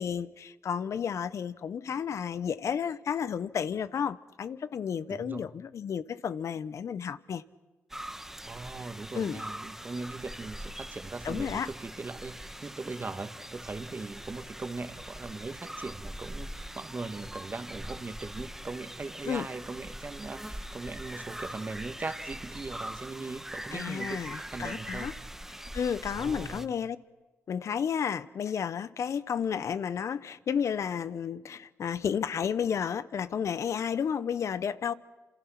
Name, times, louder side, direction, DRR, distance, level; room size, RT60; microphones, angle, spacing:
voice 1, 0.0-7.4 9.1-9.4 11.2-11.7 19.3-19.5 23.7-25.1 25.7-27.0 27.5-34.9, left 7 dB, 65° left, 1.0 m, -32 dB
voice 2, 5.1-5.5 8.5-25.1 26.2-26.7, right 3 dB, 35° right, 2.1 m, -40 dB
sound 1, 7.9-26.7, right 1 dB, 5° right, 1.2 m, -42 dB
29.5 x 27.5 x 6.0 m
cardioid pair, 60°, 5 cm